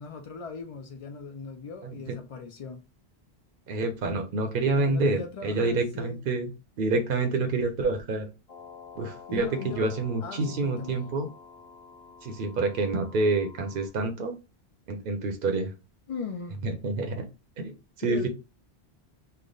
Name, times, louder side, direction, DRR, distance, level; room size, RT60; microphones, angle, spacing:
voice 1, 0.0-2.8 4.7-6.2 9.3-9.9 10.2-11.0 16.1-16.6 18.0-18.3, left 5 dB, 60° left, 0.3 m, -38 dB
voice 2, 1.8-2.1 3.7-6.5 6.8-8.3 9.0-11.3 12.2-14.4 14.9-15.7 16.6-17.2 17.6-18.3, right 3 dB, 60° right, 0.7 m, -28 dB
sound 1, 8.5-13.9, left 5 dB, 40° left, 0.7 m, -49 dB
3.3 x 2.1 x 3.7 m
omnidirectional pair, 1.1 m